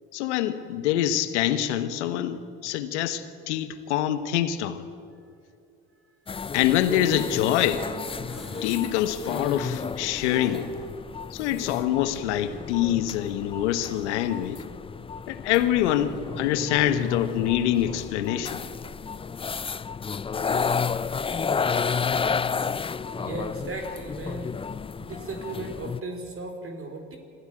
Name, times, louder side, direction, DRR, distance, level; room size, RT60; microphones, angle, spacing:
voice 1, 0.1-4.8 6.5-7.9 8.6-10.7 11.3-14.6 15.3-18.6, left 11 dB, 85° left, 11 dB, 1.4 m, -25 dB
sound 1, 6.3-26.0, left 5 dB, 15° left, 0.5 m, -32 dB
sound 2, 7.1-10.9 11.3-11.4 11.7-11.8, equal, ahead, 4.7 m, -44 dB
voice 2, 23.2-24.6 25.0-27.2, right 2 dB, 40° right, 4 dB, 4.3 m, -36 dB
26.0 x 15.0 x 9.0 m, 2.5 s
hypercardioid pair, 70°, 34 cm